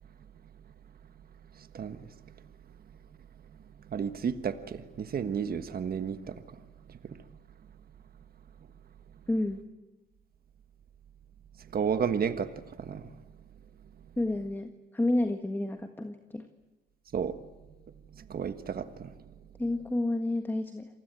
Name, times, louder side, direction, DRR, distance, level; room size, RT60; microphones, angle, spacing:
voice 1, 3.9-6.3 11.7-12.5 12.8-13.0 17.1-17.3 18.3-19.1, right 7 dB, 50° right, 10 dB, 1.5 m, -31 dB
voice 2, 9.3-9.6 14.2-16.4 19.6-20.9, left 1 dB, 10° left, 7 dB, 1.6 m, -30 dB
27.5 x 19.5 x 9.1 m, 1.2 s
cardioid pair, 90°, 20 cm